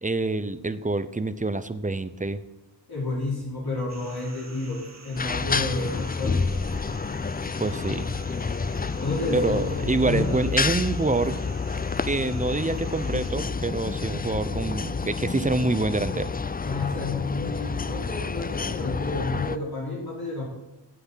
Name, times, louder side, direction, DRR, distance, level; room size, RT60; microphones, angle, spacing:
voice 1, 0.0-2.4 7.6-8.2 9.3-11.4 12.0-16.3, right 2 dB, 20° right, 13 dB, 0.7 m, -26 dB
voice 2, 2.9-6.4 9.0-10.3 16.6-20.5, left 3 dB, 55° left, -4 dB, 4.3 m, -30 dB
sound 1, 3.9-13.3, right 3 dB, 35° right, 1.8 m, -48 dB
sound 2, 5.2-19.6, left 4 dB, 20° left, 0.4 m, -29 dB
15.0 x 7.9 x 5.7 m, 0.96 s
wide cardioid pair, 85°, 44 cm